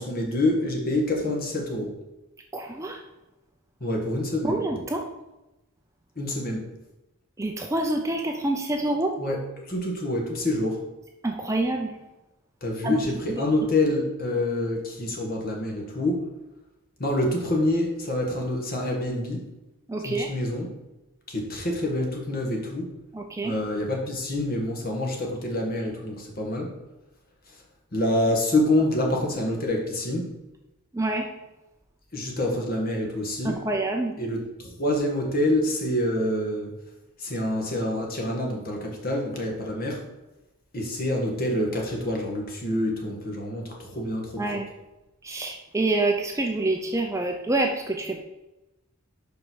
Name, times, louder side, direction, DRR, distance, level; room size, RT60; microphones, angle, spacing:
voice 1, 0.0-2.0 3.8-4.6 6.2-6.7 9.2-9.4 9.7-10.8 12.6-16.3 17.0-19.5 20.0-20.7 21.3-22.9 23.4-26.7 27.5-27.6 27.9-30.3 32.1-33.6 34.2-36.7 37.2-40.0 40.7-44.6, left 1 dB, 40° left, 0 dB, 1.7 m, -27 dB
voice 2, 2.5-3.0 4.4-5.0 7.4-9.1 11.2-12.0 12.8-13.0 13.3-13.4 19.9-20.3 23.1-23.5 30.9-31.3 33.4-34.1 44.4-44.6 45.2-48.2, right 2 dB, 15° right, 2 dB, 0.6 m, -27 dB
5.5 x 5.4 x 6.3 m, 0.98 s
head